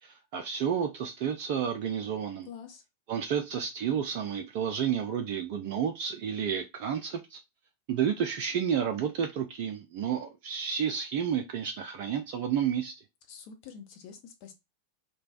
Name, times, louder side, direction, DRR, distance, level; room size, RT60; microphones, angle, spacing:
voice 1, 0.0-2.5 3.1-7.4 7.9-12.9, right 8 dB, 45° right, 0.4 m, -31 dB
voice 2, 2.5-2.8 13.3-14.5, left 7 dB, 45° left, 0.7 m, -46 dB
3.2 x 2.1 x 2.4 m
figure-of-eight pair, 90°, 0 cm